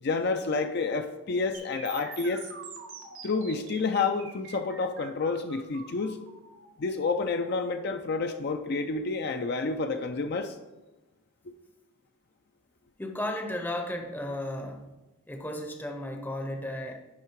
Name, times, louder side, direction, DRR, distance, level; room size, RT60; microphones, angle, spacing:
voice 1, 0.0-2.5 3.2-6.2 6.8-10.5, left 4 dB, 50° left, 6 dB, 0.4 m, -29 dB
sound 1, 1.5-9.5, right 5 dB, 70° right, 1.2 m, -46 dB
voice 2, 13.0-15.0 15.3-17.0, left 1 dB, 10° left, 4 dB, 0.7 m, -34 dB
10.5 x 3.6 x 4.6 m, 1.1 s
head